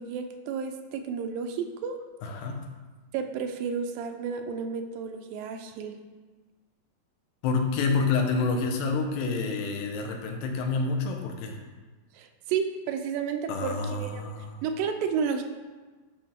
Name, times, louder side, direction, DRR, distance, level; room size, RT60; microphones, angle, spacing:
voice 1, 0.0-2.0 3.1-5.9 12.1-14.2 14.6-15.4, right 6 dB, 80° right, 6 dB, 2.3 m, -31 dB
voice 2, 2.2-2.6 7.4-11.6 13.5-14.6, left 4 dB, 85° left, 3 dB, 2.6 m, -28 dB
11.5 x 5.0 x 3.6 m, 1.3 s
omnidirectional pair, 4.1 m